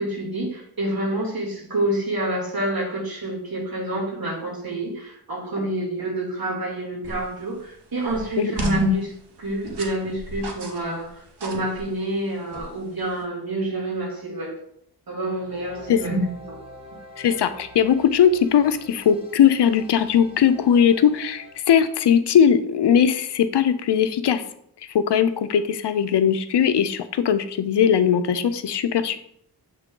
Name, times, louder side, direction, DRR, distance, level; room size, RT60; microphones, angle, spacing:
voice 1, 0.0-14.6 15.1-16.2 16.5-16.6, right 1 dB, 60° right, -4 dB, 2.5 m, -27 dB
sound 1, 7.0-13.2, right 1 dB, 80° right, 1.1 m, -38 dB
sound 2, 15.3-21.6, left 1 dB, 15° right, 1.6 m, -45 dB
voice 2, 17.2-24.4 24.9-29.2, left 8 dB, 85° left, 11 dB, 0.6 m, -19 dB
7.3 x 3.6 x 3.7 m, 0.70 s
wide cardioid pair, 85°, 40 cm